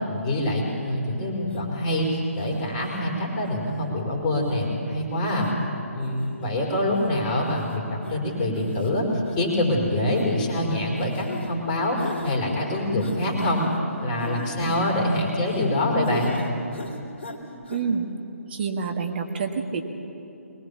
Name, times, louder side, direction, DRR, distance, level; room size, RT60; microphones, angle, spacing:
voice 1, 0.1-5.5 5.9-9.1 9.4-13.7 14.0-16.4, left 1 dB, 25° left, -1 dB, 4.6 m, -25 dB
sound 1, 1.5-1.7 2.4-2.9 3.4-3.9 4.5-4.7 5.3-5.5 6.0-6.5 7.0-7.1 7.5-7.7 8.0-8.1 8.5-8.9 9.3-9.4 10.1-10.3 11.0-11.5 12.0-12.4 13.0-13.7 14.2-15.7 16.0-16.5 16.7-17.4 17.7-17.8, left 1 dB, 50° left, 3.2 m, -37 dB
voice 2, 17.7-18.1 18.5-19.8, right 5 dB, 45° right, 4 dB, 1.9 m, -27 dB
22.5 x 19.5 x 7.1 m, 2.9 s
figure-of-eight pair, 140°, 8 cm